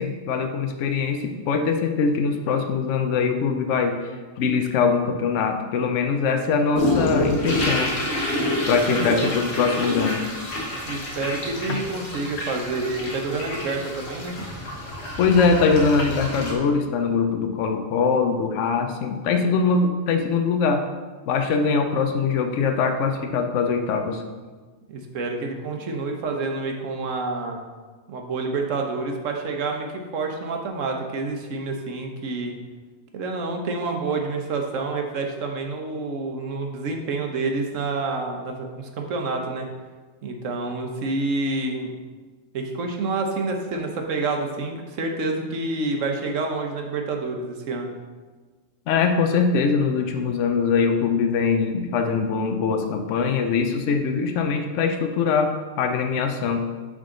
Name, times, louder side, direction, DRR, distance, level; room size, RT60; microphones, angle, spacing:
voice 1, 0.0-7.9 8.7-10.3 15.2-20.8 21.3-24.2 48.9-55.5 55.8-56.7, left 5 dB, 75° left, 5 dB, 0.9 m, -22 dB
sound 1, 6.7-16.5, left 1 dB, 60° left, 1.5 m, -28 dB
voice 2, 8.8-9.4 10.9-14.5 24.9-27.6 28.1-32.5 33.1-39.7 40.2-41.9 42.5-47.9, right 3 dB, 80° right, 3 dB, 1.2 m, -28 dB
9.8 x 3.7 x 3.8 m, 1.4 s
omnidirectional pair, 1.3 m